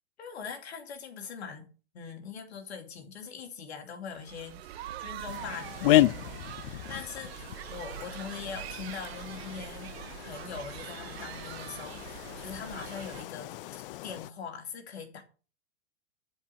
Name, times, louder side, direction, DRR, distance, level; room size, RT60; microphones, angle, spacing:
voice 1, 0.2-9.9 10.2-15.2, left 6 dB, 80° left, 2.7 m, -42 dB
sound 1, 4.1-13.2, right 12 dB, 70° right, 0.8 m, -43 dB
sound 2, 5.3-14.3, left 15 dB, 60° left, 0.7 m, -32 dB
12.0 x 4.9 x 6.9 m
hypercardioid pair, 115°, 32 cm